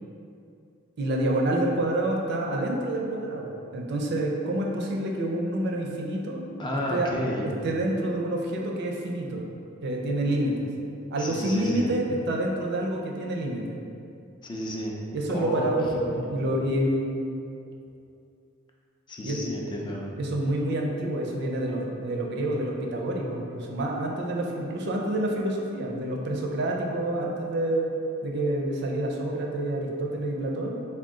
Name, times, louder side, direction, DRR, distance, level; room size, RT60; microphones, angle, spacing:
voice 1, 1.0-6.4 6.7-9.4 9.8-10.7 11.1-13.8 15.1-17.2 19.2-19.4 20.1-27.9 28.2-30.9, right 1 dB, 60° right, -1 dB, 0.4 m, -28 dB
voice 2, 6.6-7.5 11.2-11.9 14.4-15.0 15.3-16.5 19.1-20.1, left 1 dB, 25° left, -2 dB, 0.4 m, -32 dB
3.5 x 2.3 x 3.7 m, 2.6 s
head